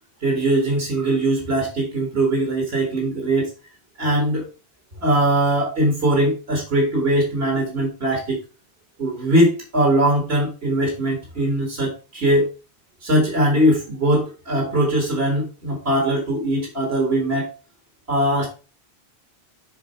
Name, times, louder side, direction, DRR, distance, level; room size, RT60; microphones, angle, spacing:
voice 1, 0.2-3.5 4.0-4.5 5.0-8.4 9.0-12.5 13.0-17.5 18.1-18.5, right 1 dB, 75° right, 0 dB, 1.9 m, -21 dB
7.2 x 4.0 x 4.3 m, 0.33 s
omnidirectional pair, 1.0 m